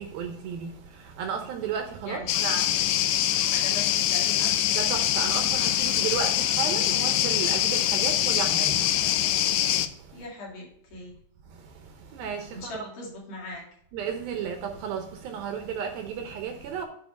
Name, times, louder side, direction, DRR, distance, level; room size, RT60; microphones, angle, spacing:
voice 1, 0.0-3.5 4.7-10.2 11.5-12.8 13.9-16.8, right 7 dB, 70° right, 2.5 m, -34 dB
voice 2, 2.0-2.4 3.5-4.6 10.1-11.2 12.5-13.7, left 2 dB, 60° left, 4.0 m, -39 dB
sound 1, 2.3-9.9, left 12 dB, 80° left, 2.4 m, -24 dB
9.3 x 4.5 x 5.2 m
omnidirectional pair, 4.8 m